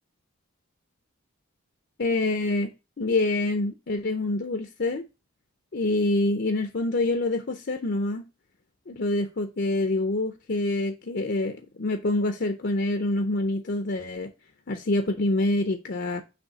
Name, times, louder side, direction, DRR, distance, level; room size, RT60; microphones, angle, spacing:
voice 1, 2.0-5.0 5.7-8.3 8.9-14.3 14.7-16.2, left 2 dB, 50° left, 0.6 m, -26 dB
6.7 x 3.1 x 5.9 m
head